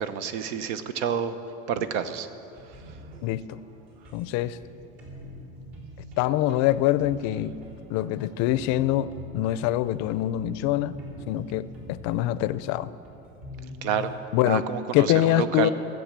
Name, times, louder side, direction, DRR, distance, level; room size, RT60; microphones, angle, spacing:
voice 1, 0.0-1.4 1.7-2.3 2.6-3.0 13.8-14.1 14.4-15.7, right 8 dB, 80° right, 11 dB, 0.9 m, -29 dB
sound 1, 2.5-14.1, left 1 dB, 60° right, 3.9 m, -44 dB
voice 2, 3.2-3.6 4.1-4.6 6.2-7.5 7.9-11.0 11.3-12.9 14.3-14.6 14.9-15.7, left 14 dB, 50° left, 16 dB, 0.5 m, -24 dB
14.5 x 7.6 x 7.4 m, 2.8 s
cardioid pair, 140°, 36 cm